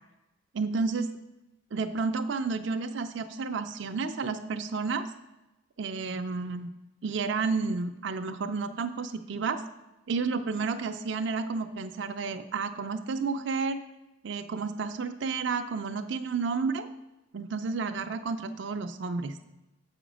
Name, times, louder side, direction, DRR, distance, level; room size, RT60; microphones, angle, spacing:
voice 1, 0.5-1.1 1.7-5.1 5.8-6.7 7.0-9.6 10.1-13.8 14.2-16.9 17.3-19.4, right 4 dB, 60° right, 7 dB, 0.4 m, -31 dB
7.7 x 5.1 x 6.1 m, 0.98 s
head